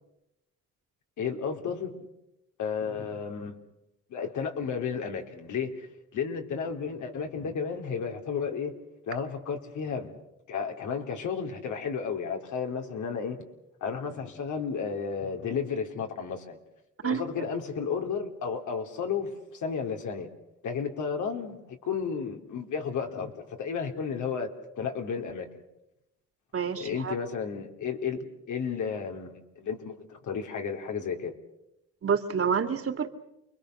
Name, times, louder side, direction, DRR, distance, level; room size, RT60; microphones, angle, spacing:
voice 1, 1.2-2.0 2.6-3.6 4.1-5.9 6.1-8.7 9.0-10.2 10.5-13.4 13.8-16.6 17.0-20.3 20.6-25.5 26.8-31.3, left 6 dB, 80° left, 4 dB, 3.3 m, -33 dB
voice 2, 26.5-27.1 32.0-33.1, right 6 dB, 50° right, 7 dB, 2.6 m, -28 dB
29.0 x 22.0 x 6.6 m, 0.88 s
cardioid pair, 75°, 30 cm